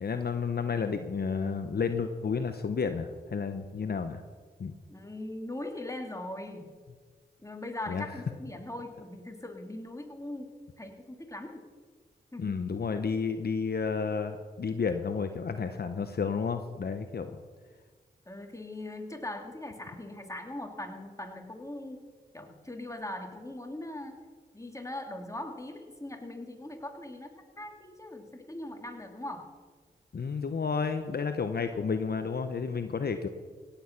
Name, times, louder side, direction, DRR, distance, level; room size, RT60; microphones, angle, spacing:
voice 1, 0.0-4.2 4.6-4.7 7.9-8.2 12.4-17.3 30.1-33.3, left 5 dB, 60° left, 8 dB, 0.9 m, -31 dB
voice 2, 4.9-6.7 7.4-11.6 12.3-12.6 18.3-22.0 22.3-24.2 24.5-29.5, left 1 dB, 15° left, 3 dB, 2.5 m, -40 dB
17.0 x 8.9 x 5.9 m, 1.5 s
cardioid pair, 40°, 18 cm